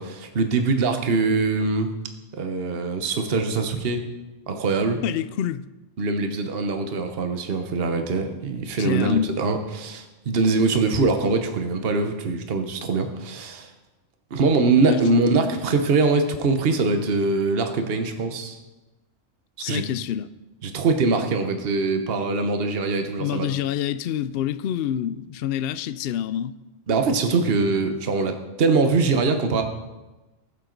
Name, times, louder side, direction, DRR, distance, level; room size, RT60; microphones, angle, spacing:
voice 1, 0.0-1.9 2.3-4.0 4.5-5.0 6.0-13.7 14.3-18.6 19.6-19.8 20.6-23.5 26.9-29.6, right 3 dB, 50° right, 1.2 m, -23 dB
voice 2, 5.0-5.7 8.8-9.4 14.8-15.4 19.6-20.3 23.2-26.6, left 10 dB, 65° left, 0.6 m, -27 dB
20.0 x 7.4 x 3.9 m
omnidirectional pair, 1.3 m